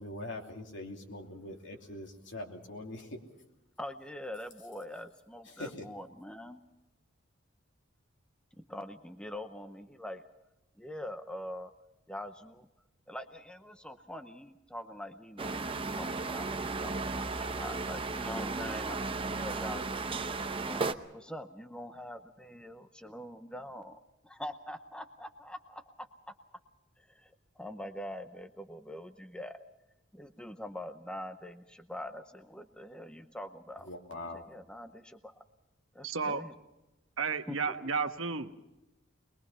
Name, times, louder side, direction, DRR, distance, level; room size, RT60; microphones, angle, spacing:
voice 1, 0.0-3.2 5.5-5.8 33.9-34.4, left 1 dB, 65° left, 2 dB, 3.0 m, -42 dB
voice 2, 3.8-6.6 8.6-10.2 10.8-11.7 12.1-12.7 13.1-20.2 20.6-24.0 24.2-25.8 26.3-26.4 27.0-29.6 30.1-33.9 34.3-35.4 35.9-36.5 37.5-37.7, left 1 dB, 5° left, 8 dB, 0.7 m, -44 dB
sound 1, 15.4-20.9, right 3 dB, 25° right, 0.8 m, -35 dB
voice 3, 36.0-36.4 37.2-38.5, right 5 dB, 80° right, 7 dB, 1.3 m, -32 dB
22.5 x 22.0 x 5.6 m, 0.96 s
head